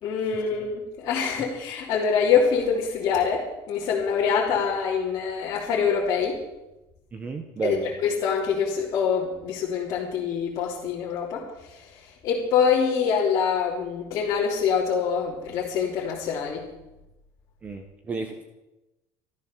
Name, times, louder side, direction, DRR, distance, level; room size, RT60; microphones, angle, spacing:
voice 1, 0.0-6.4 7.6-11.4 12.2-16.6, left 6 dB, 40° left, -7 dB, 3.2 m, -25 dB
voice 2, 7.1-7.9 17.6-18.4, right 3 dB, 15° right, 5 dB, 1.1 m, -31 dB
15.0 x 13.5 x 6.9 m, 0.98 s
cardioid pair, 175°, 8 cm